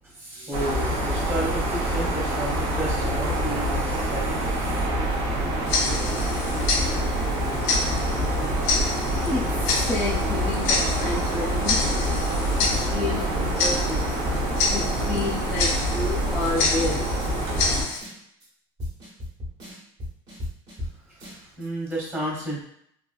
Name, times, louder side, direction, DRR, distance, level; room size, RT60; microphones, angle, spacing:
voice 1, 0.0-4.9 20.9-22.6, right 1 dB, 20° right, -4 dB, 1.1 m, -32 dB
sound 1, 0.5-17.8, right 1 dB, 55° right, 0.7 m, -26 dB
Tick-tock, 5.7-18.0, left 3 dB, 70° left, 0.6 m, -29 dB
voice 2, 9.2-12.2 12.6-14.1 14.7-17.1, left 2 dB, 10° left, -7 dB, 0.4 m, -30 dB
sound 2, 15.6-15.7 16.0-16.1 16.4-16.8 17.2-17.3 17.6-17.7 18.0-18.4 18.8-20.9 21.2-21.6, left 1 dB, 40° right, 1.1 m, -35 dB
2.9 x 2.4 x 2.3 m, 0.66 s
cardioid pair, 155°, 11 cm